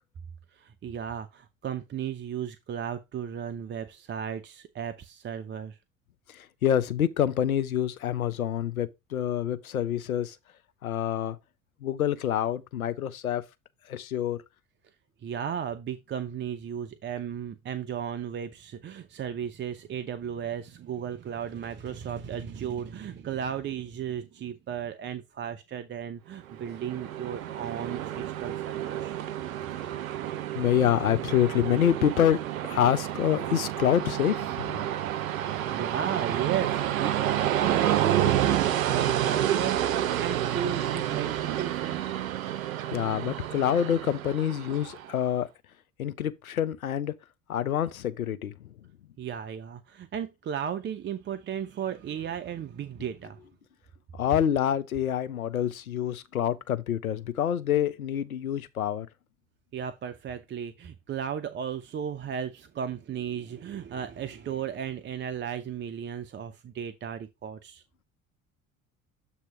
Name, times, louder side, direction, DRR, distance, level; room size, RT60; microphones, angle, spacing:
voice 1, 0.5-5.8 15.2-29.2 35.7-37.2 37.6-42.0 49.2-53.4 59.7-67.8, right 8 dB, 25° right, 0.6 m, -35 dB
voice 2, 6.3-10.4 10.8-11.4 11.8-13.4 13.9-14.4 29.8-29.9 30.6-34.8 42.9-45.5 46.0-47.1 47.5-48.5 54.1-59.1, left 10 dB, 90° left, 0.6 m, -27 dB
Train, 26.5-45.1, right 12 dB, 75° right, 0.6 m, -29 dB
7.7 x 2.8 x 5.6 m
figure-of-eight pair, 60°, 41 cm